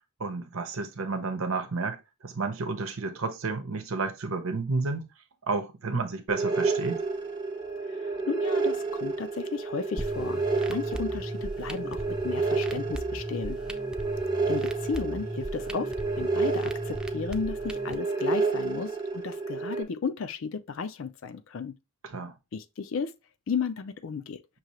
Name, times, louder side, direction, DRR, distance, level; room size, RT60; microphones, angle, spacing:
voice 1, 0.2-5.1 5.5-7.0 22.0-22.3, right 3 dB, 85° right, 0.9 m, -31 dB
sound 1, 6.3-19.8, right 3 dB, 20° right, 0.7 m, -30 dB
voice 2, 8.3-10.4 10.7-13.6 14.5-21.7 22.5-23.1 23.5-24.4, left 5 dB, 70° left, 0.4 m, -34 dB
sound 2, 10.0-18.0, equal, 5° right, 0.3 m, -38 dB
6.1 x 2.8 x 3.0 m
head